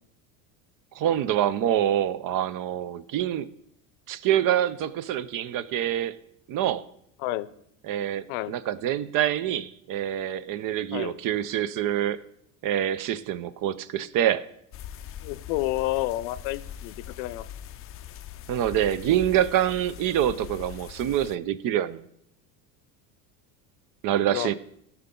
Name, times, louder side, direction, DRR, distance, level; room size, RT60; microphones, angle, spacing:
voice 1, 0.9-3.5 4.1-6.1 6.5-6.8 7.9-12.2 12.6-14.5 18.5-22.0 24.0-24.5, right 11 dB, 50° right, 16 dB, 0.7 m, -26 dB
sound 1, 14.7-21.4, left 10 dB, 35° left, 0.5 m, -41 dB
voice 2, 15.2-17.5 24.3-24.5, left 16 dB, 70° left, 16 dB, 0.7 m, -30 dB
15.5 x 5.8 x 3.7 m, 0.71 s
supercardioid pair, 95°, 42 cm